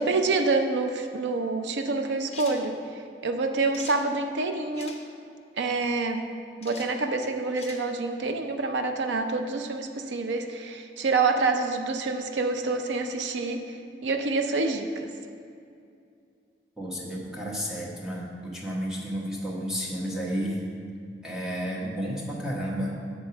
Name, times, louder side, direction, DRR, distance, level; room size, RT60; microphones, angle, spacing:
voice 1, 0.0-2.8 3.2-5.0 5.6-6.2 6.6-15.1, right 3 dB, 85° right, 6 dB, 0.5 m, -27 dB
sound 1, 2.3-2.6 3.7-4.0 4.7-5.0 6.6-6.9 7.5-7.8, left 5 dB, 35° left, 0.8 m, -43 dB
voice 2, 16.8-20.6 21.2-22.9, equal, 5° right, -4 dB, 1.1 m, -32 dB
7.0 x 5.5 x 5.6 m, 2.5 s
head